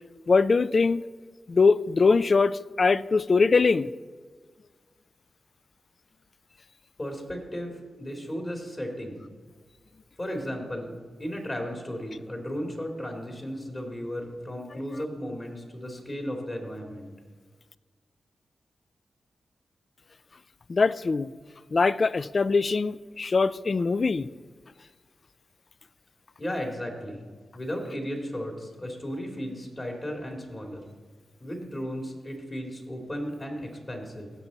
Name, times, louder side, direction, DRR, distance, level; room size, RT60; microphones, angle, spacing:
voice 1, 0.3-1.0 1.5-3.9 20.7-21.3 21.7-24.3, left 4 dB, 50° left, 17 dB, 0.3 m, -22 dB
voice 2, 7.0-9.2 10.2-17.1 26.4-27.3 27.5-30.8 31.4-34.3, equal, 35° left, 2 dB, 2.5 m, -35 dB
16.5 x 6.0 x 4.0 m, 1.5 s
cardioid pair, 60°, 0 cm